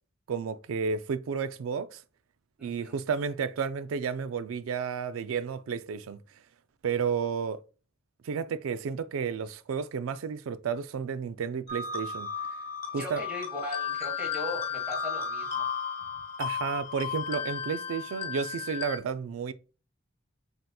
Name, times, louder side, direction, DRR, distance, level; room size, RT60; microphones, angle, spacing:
voice 1, 0.3-2.0 2.6-6.2 6.8-7.6 8.2-12.3 12.9-13.2 16.4-19.5, right 6 dB, 85° right, 0.4 m, -32 dB
voice 2, 2.6-3.0 13.0-15.6, left 1 dB, 5° right, 1.4 m, -38 dB
sound 1, 11.7-19.0, left 6 dB, 30° left, 1.2 m, -34 dB
7.6 x 2.8 x 2.2 m
head